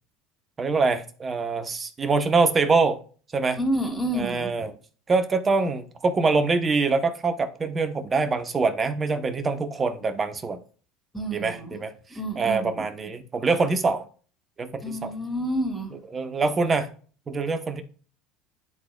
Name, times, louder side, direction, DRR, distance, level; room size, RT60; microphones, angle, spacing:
voice 1, 0.6-3.0 3.3-3.6 4.1-4.7 5.1-10.6 11.3-11.9 12.4-14.1 14.6-15.1 16.1-16.9 17.3-17.8, right 4 dB, 30° right, 9 dB, 1.1 m, -24 dB
voice 2, 3.6-4.7 11.1-11.8 12.1-12.9 14.8-15.9, right 1 dB, 5° left, 2 dB, 2.6 m, -29 dB
11.0 x 4.1 x 2.4 m, 0.40 s
hypercardioid pair, 80°, 0 cm